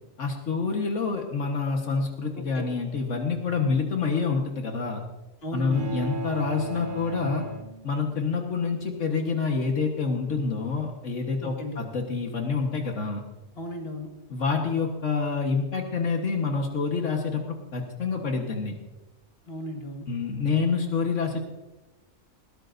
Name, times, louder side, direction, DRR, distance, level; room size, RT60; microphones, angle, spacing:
voice 1, 0.2-5.0 5.5-7.5 7.8-13.2 14.3-17.4 17.7-18.7 20.1-21.4, left 4 dB, 80° left, 2 dB, 1.7 m, -27 dB
voice 2, 2.3-2.7 5.4-6.0 11.4-11.8 13.5-14.1 19.5-20.1, left 1 dB, 55° left, 2 dB, 2.2 m, -35 dB
sound 1, 5.7-8.3, right 3 dB, 45° right, 1.6 m, -35 dB
20.5 x 17.0 x 2.6 m, 1.0 s
omnidirectional pair, 1.3 m